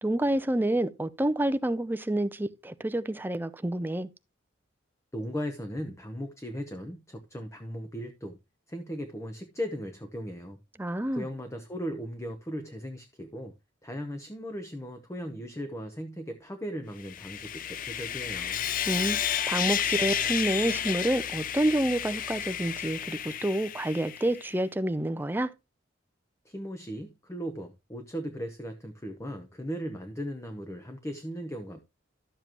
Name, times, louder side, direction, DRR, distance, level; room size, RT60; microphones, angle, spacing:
voice 1, 0.0-4.1 10.8-11.3 18.9-19.2 19.5-25.5, right 1 dB, 10° right, 0.5 m, -28 dB
voice 2, 5.1-8.4 8.7-10.6 11.1-13.5 13.8-18.6 26.4-31.8, equal, 15° left, 0.8 m, -37 dB
Sawing, 17.0-24.4, left 9 dB, 45° left, 0.4 m, -31 dB
12.5 x 7.2 x 2.9 m
head